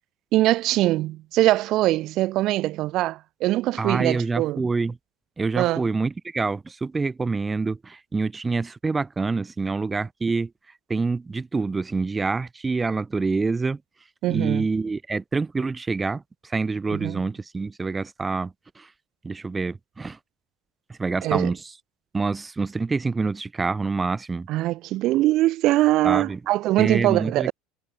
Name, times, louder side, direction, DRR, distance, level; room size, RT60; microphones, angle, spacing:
voice 1, 0.3-4.6 5.6-5.8 14.2-14.7 16.9-17.2 21.2-21.5 24.5-27.5, right 16 dB, 50° right, 3.0 m, -22 dB
voice 2, 3.8-5.0 5.4-10.5 10.9-13.8 14.3-18.9 19.2-20.2 20.9-21.7 22.1-24.5 26.0-26.4 26.8-27.5, right 4 dB, 15° right, 2.6 m, -26 dB
supercardioid pair, 130°, 0 cm